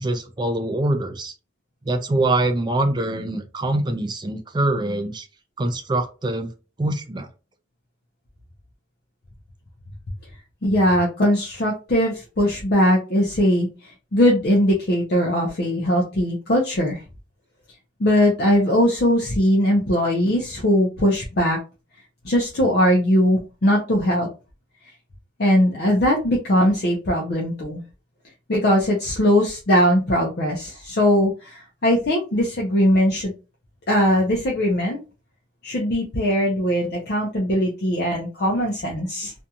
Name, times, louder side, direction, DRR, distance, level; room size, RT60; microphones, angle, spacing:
voice 1, 0.0-1.3 1.8-5.3 5.6-6.5 6.8-7.3, right 2 dB, 25° right, 6 dB, 0.3 m, -24 dB
voice 2, 10.6-17.0 18.0-21.6 22.2-24.3 25.4-27.8 28.5-33.3 33.9-35.0 35.6-39.3, equal, 55° left, -1 dB, 0.5 m, -20 dB
2.5 x 2.3 x 2.8 m, 0.32 s
head